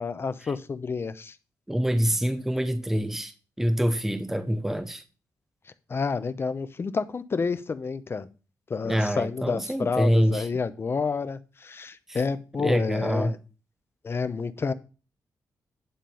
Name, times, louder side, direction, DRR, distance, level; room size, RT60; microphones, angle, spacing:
voice 1, 0.0-1.4 5.9-8.3 8.7-13.4 14.0-14.7, left 5 dB, 35° left, 0.8 m, -29 dB
voice 2, 1.7-5.0 8.8-10.5 12.1-12.2 12.6-13.3, equal, 5° right, 0.7 m, -26 dB
10.5 x 3.8 x 6.9 m
cardioid pair, 110°, 7 cm